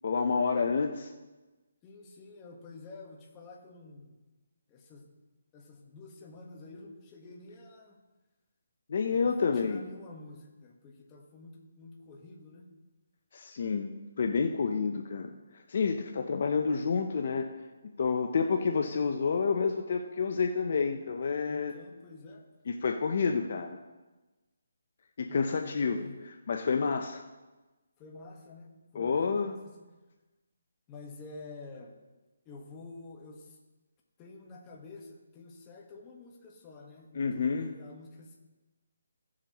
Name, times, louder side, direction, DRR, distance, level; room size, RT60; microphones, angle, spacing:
voice 1, 0.0-1.1 8.9-9.8 13.3-13.9 14.2-15.3 15.7-17.5 17.8-21.7 22.7-23.8 25.2-26.0 26.5-27.2 28.9-29.6 37.1-37.7, left 5 dB, 50° left, 5 dB, 0.7 m, -29 dB
voice 2, 1.8-4.1 4.7-5.1 5.5-8.0 9.1-9.3 9.5-12.7 21.5-22.5 25.3-26.2 28.0-29.9 30.9-32.0 32.4-33.6 34.2-38.4, left 3 dB, 20° left, -1 dB, 1.4 m, -49 dB
16.5 x 7.4 x 3.0 m, 1.2 s
hypercardioid pair, 165°, 0 cm